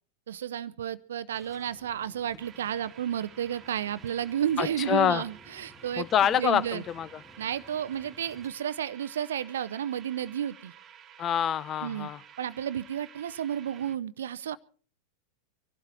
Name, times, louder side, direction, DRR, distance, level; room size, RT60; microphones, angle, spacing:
voice 1, 0.3-6.1 6.4-6.8 7.4-10.7 11.8-12.1 12.4-14.6, right 9 dB, 60° right, 18 dB, 0.6 m, -32 dB
sound 1, 1.3-8.5, equal, ahead, 3.2 m, -56 dB
sound 2, 2.4-14.0, right 9 dB, 30° right, 1.5 m, -52 dB
voice 2, 4.6-5.2 6.0-7.2 11.2-12.2, left 9 dB, 30° left, 19 dB, 0.7 m, -26 dB
24.0 x 12.0 x 4.4 m, 0.43 s
figure-of-eight pair, 90°, 0 cm